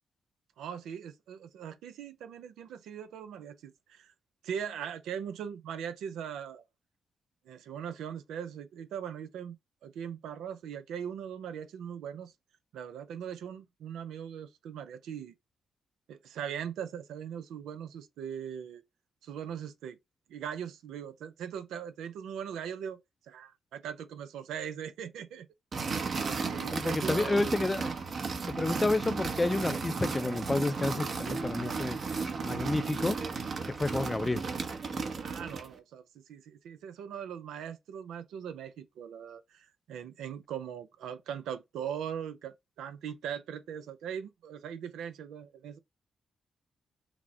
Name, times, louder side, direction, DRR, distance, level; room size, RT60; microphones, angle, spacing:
voice 1, 0.6-4.1 4.4-6.6 7.5-9.6 9.8-12.3 12.7-15.3 16.1-18.8 19.2-20.0 20.3-23.0 23.3-25.5 26.2-27.5 35.2-45.8, right 8 dB, 85° right, 0.5 m, -40 dB
sound 1, 25.7-35.7, right 4 dB, 60° right, 0.9 m, -34 dB
voice 2, 26.7-27.9 28.5-32.0 32.4-33.2 33.7-34.5, left 2 dB, 25° left, 0.5 m, -30 dB
6.0 x 2.1 x 3.8 m
supercardioid pair, 55°, 0 cm